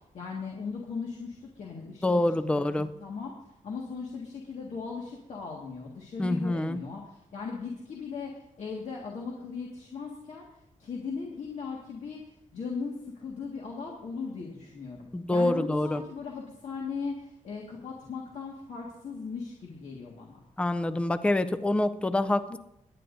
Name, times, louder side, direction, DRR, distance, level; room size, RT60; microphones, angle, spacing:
voice 1, 0.1-2.2 2.5-3.3 3.6-8.3 8.6-10.5 10.8-12.2 12.5-20.4, left 5 dB, 65° left, -2 dB, 1.8 m, -38 dB
voice 2, 2.0-2.9 6.2-6.8 15.1-16.0 20.6-22.6, left 1 dB, 10° left, 12 dB, 0.4 m, -26 dB
23.0 x 10.0 x 2.6 m, 0.86 s
wide cardioid pair, 165°, 13 cm